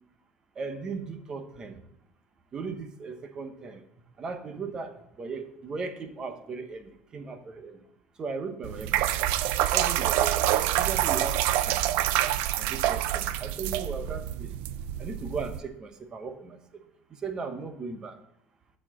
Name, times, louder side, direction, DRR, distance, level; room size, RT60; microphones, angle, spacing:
voice 1, 0.6-1.8 2.5-3.8 4.2-7.8 8.2-9.3 9.7-10.4 10.7-11.4 11.7-11.8 12.5-14.5 15.0-16.6 17.1-18.2, right 4 dB, 25° right, 7 dB, 0.9 m, -37 dB
sound 1, 8.6-15.6, right 13 dB, 65° right, 0.5 m, -27 dB
12.0 x 4.4 x 7.3 m, 0.78 s
cardioid pair, 180°, 3 cm